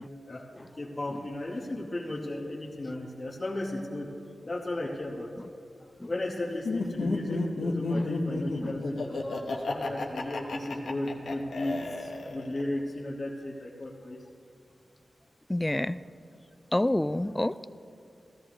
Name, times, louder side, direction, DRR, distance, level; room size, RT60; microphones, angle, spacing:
voice 1, 0.7-4.1 4.4-5.3 6.1-14.2, left 1 dB, 35° left, -5 dB, 1.3 m, -35 dB
Laughter, 6.6-12.6, left 3 dB, 80° left, 1.2 m, -32 dB
voice 2, 15.5-16.0 16.7-17.7, left 1 dB, 15° left, 15 dB, 0.3 m, -27 dB
15.5 x 13.5 x 3.1 m, 2.6 s
wide cardioid pair, 75°, 0 cm